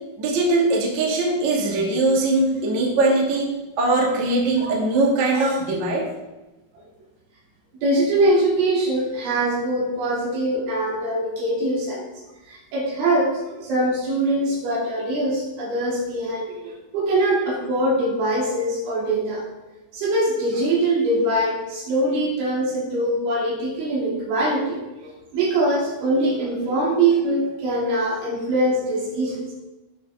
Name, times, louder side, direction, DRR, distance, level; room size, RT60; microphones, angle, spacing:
voice 1, 0.2-3.5 3.8-6.1, right 2 dB, 45° right, -2 dB, 2.7 m, -21 dB
voice 2, 7.8-12.0 12.5-19.4 19.9-29.4, right 1 dB, 65° right, -4 dB, 5.2 m, -23 dB
18.5 x 7.8 x 3.8 m, 1.0 s
omnidirectional pair, 6.0 m